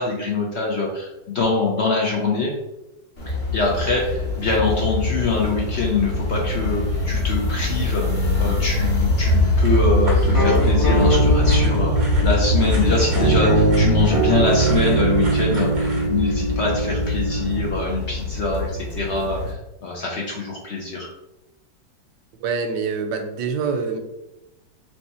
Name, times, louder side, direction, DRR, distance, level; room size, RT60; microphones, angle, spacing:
voice 1, 0.0-2.5 3.3-8.0 8.4-11.9 12.2-21.1, left 3 dB, 70° left, -2 dB, 0.6 m, -24 dB
sound 1, 3.2-19.5, left 2 dB, 40° left, 1.4 m, -22 dB
sound 2, 9.6-16.1, right 1 dB, 60° right, 0.5 m, -37 dB
sound 3, 10.3-17.8, right 2 dB, 25° left, 0.5 m, -22 dB
voice 2, 22.4-24.0, right 5 dB, 75° right, 6 dB, 1.1 m, -25 dB
3.3 x 3.0 x 4.2 m, 0.93 s
omnidirectional pair, 2.1 m